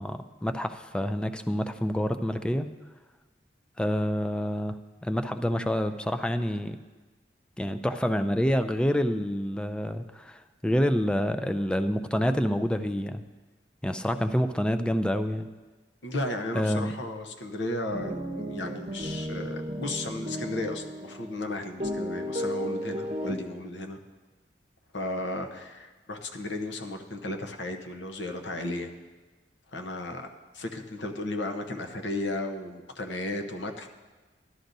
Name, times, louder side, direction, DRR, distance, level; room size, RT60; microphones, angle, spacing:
voice 1, 0.0-2.7 3.8-6.8 7.6-13.2 13.8-15.5 16.6-16.9, equal, 5° left, 9 dB, 0.3 m, -27 dB
voice 2, 16.0-24.0 24.9-28.9 29.7-30.3 30.5-33.9, left 1 dB, 85° left, 5 dB, 0.9 m, -34 dB
sound 1, 17.9-21.3 21.8-23.3, equal, 35° right, 0.8 m, -34 dB
12.5 x 11.5 x 2.6 m, 1.3 s
head